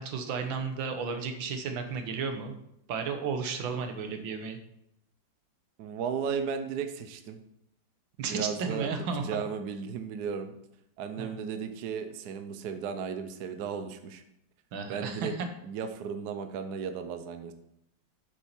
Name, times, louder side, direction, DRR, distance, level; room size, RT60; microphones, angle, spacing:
voice 1, 0.0-2.6 2.9-4.6 8.2-9.4 11.2-11.3 14.7-15.5, right 5 dB, 90° right, 6 dB, 1.9 m, -33 dB
voice 2, 5.8-7.4 8.3-10.5 11.0-14.2 14.9-15.3 15.6-17.5, right 6 dB, 65° right, 8 dB, 1.2 m, -35 dB
8.2 x 7.0 x 4.4 m, 0.78 s
omnidirectional pair, 2.1 m